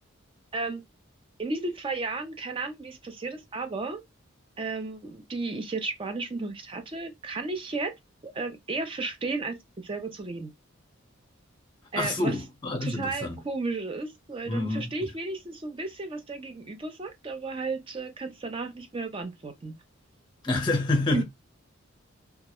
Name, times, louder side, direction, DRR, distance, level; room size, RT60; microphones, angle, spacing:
voice 1, 0.5-0.8 1.4-4.0 4.6-7.9 8.2-10.5 11.9-12.4 12.8-19.7 21.1-21.2, right 3 dB, 25° right, 0.4 m, -33 dB
voice 2, 12.0-13.4 14.5-14.9 20.4-21.2, left 2 dB, 20° left, 0.7 m, -27 dB
2.3 x 2.0 x 2.8 m
head